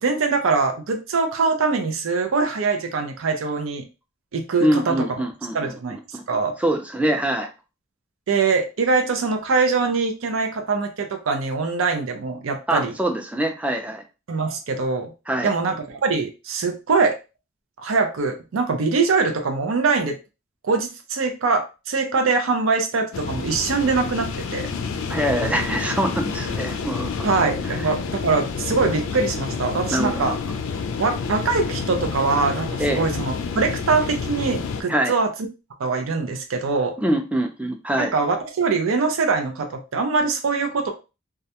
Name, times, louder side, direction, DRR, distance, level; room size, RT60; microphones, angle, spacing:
voice 1, 0.0-3.8 4.3-4.9 5.5-6.0 6.3-6.5 8.3-12.9 14.3-15.1 15.4-17.2 17.8-20.2 20.6-24.7 27.2-30.3 31.0-35.3 35.8-36.9 38.0-40.9, right 4 dB, 85° right, 4 dB, 0.5 m, -23 dB
voice 2, 4.6-5.7 6.1-6.2 6.6-7.5 12.7-14.0 15.3-15.5 25.1-27.3 27.6-27.9 29.9-30.4 32.8-33.1 34.9-35.2 37.0-38.1, right 1 dB, 5° right, 5 dB, 0.3 m, -24 dB
sound 1, 23.1-34.8, left 5 dB, 85° left, 0.4 m, -29 dB
2.3 x 2.1 x 2.8 m, 0.29 s
head